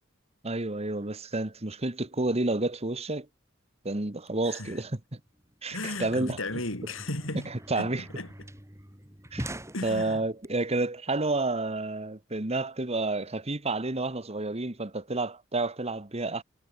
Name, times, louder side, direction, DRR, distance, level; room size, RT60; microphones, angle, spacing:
voice 1, 0.4-3.3 3.8-5.0 5.6-6.4 7.7-8.0 9.3-9.5 9.8-16.4, right 2 dB, 30° right, 1.7 m, -30 dB
voice 2, 4.4-4.8 5.7-7.9 8.2-8.3 9.7-10.3, left 2 dB, 70° left, 5.8 m, -35 dB
sound 1, 5.0-5.1 5.3-10.5, right 1 dB, 15° right, 6.1 m, -43 dB
head